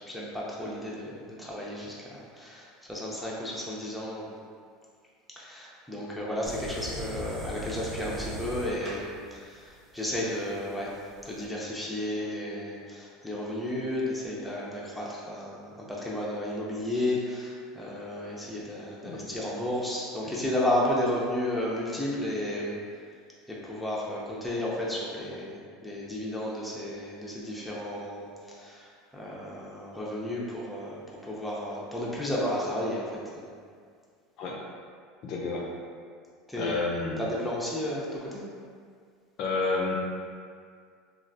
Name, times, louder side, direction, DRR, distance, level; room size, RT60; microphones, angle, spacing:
voice 1, 0.1-4.3 5.4-10.9 11.2-22.8 23.5-25.5 25.8-33.5 36.5-36.8 37.2-38.4, left 1 dB, ahead, -6 dB, 0.5 m, -33 dB
sound 1, 6.5-11.4, equal, 35° right, 0.8 m, -40 dB
voice 2, 35.2-35.7 36.6-37.2 39.4-40.0, left 3 dB, 50° left, -1 dB, 0.4 m, -30 dB
3.2 x 2.3 x 2.6 m, 2.1 s
supercardioid pair, 135°, 0 cm